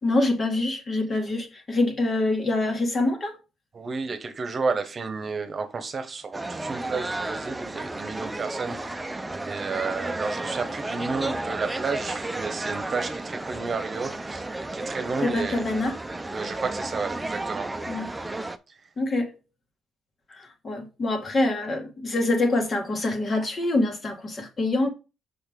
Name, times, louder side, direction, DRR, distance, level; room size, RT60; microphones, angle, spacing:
voice 1, 0.0-3.4 15.2-15.9 17.9-18.1 19.0-19.4 20.3-24.9, left 2 dB, 40° left, 2.1 m, -25 dB
voice 2, 3.7-15.7 16.3-17.7, right 4 dB, 40° right, 1.2 m, -32 dB
sound 1, 6.3-18.6, right 2 dB, 15° right, 0.7 m, -33 dB
6.4 x 5.6 x 3.7 m
cardioid pair, 90°, 0 cm